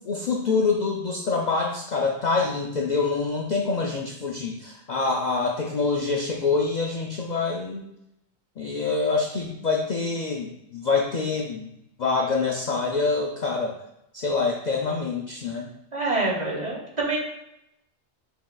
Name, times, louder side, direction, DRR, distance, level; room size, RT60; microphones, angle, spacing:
voice 1, 0.1-7.8 8.6-11.7 12.0-13.8 14.1-15.7, left 4 dB, 55° left, 0 dB, 0.5 m, -26 dB
voice 2, 15.9-17.2, right 2 dB, 40° right, -3 dB, 1.3 m, -26 dB
6.2 x 3.8 x 2.3 m, 0.82 s
omnidirectional pair, 1.2 m